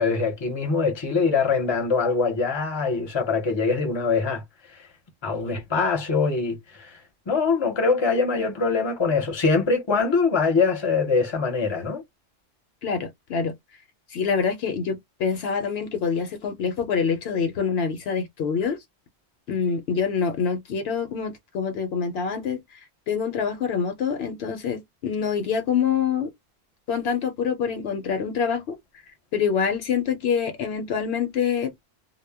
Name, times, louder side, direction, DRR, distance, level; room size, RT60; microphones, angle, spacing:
voice 1, 0.0-4.4 5.2-6.9 7.3-12.0, left 4 dB, 30° left, 0.6 m, -23 dB
voice 2, 12.8-13.5 14.1-18.8 19.5-22.6 23.1-26.3 26.9-28.8 29.3-31.7, left 6 dB, 70° left, 0.8 m, -26 dB
2.1 x 2.1 x 3.3 m
omnidirectional pair, 1.1 m